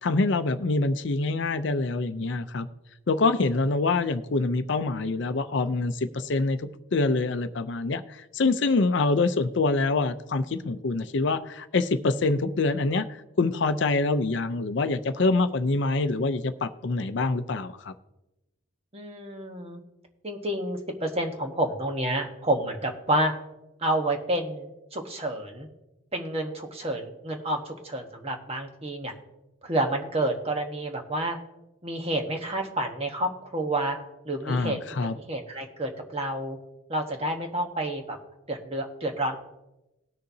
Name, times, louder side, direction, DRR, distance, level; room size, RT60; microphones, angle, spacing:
voice 1, 0.0-2.7 3.1-6.6 6.9-13.0 13.4-17.9 34.5-35.2, left 3 dB, 60° left, 0.5 m, -25 dB
voice 2, 18.9-19.8 20.2-23.3 23.8-25.7 26.1-29.1 29.6-31.4 31.8-34.0 34.2-34.8 35.3-36.6 36.9-38.2 38.5-39.4, right 1 dB, 30° right, 1.2 m, -29 dB
20.0 x 6.6 x 2.7 m
head